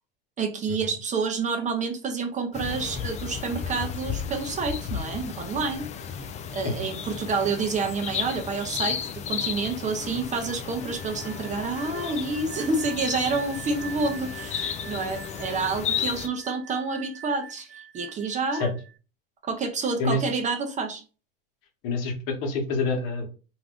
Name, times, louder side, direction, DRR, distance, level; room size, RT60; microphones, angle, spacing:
voice 1, 0.4-5.9 6.5-9.0 9.3-18.7 19.4-21.0, right 4 dB, 25° right, 6 dB, 0.5 m, -28 dB
sound 1, 2.5-16.3, left 8 dB, 25° left, 0.3 m, -34 dB
sound 2, 10.7-19.0, right 10 dB, 80° right, 0.5 m, -45 dB
voice 2, 21.8-23.3, left 3 dB, 55° left, 2 dB, 0.9 m, -27 dB
2.5 x 2.4 x 3.4 m, 0.35 s
supercardioid pair, 105°, 29 cm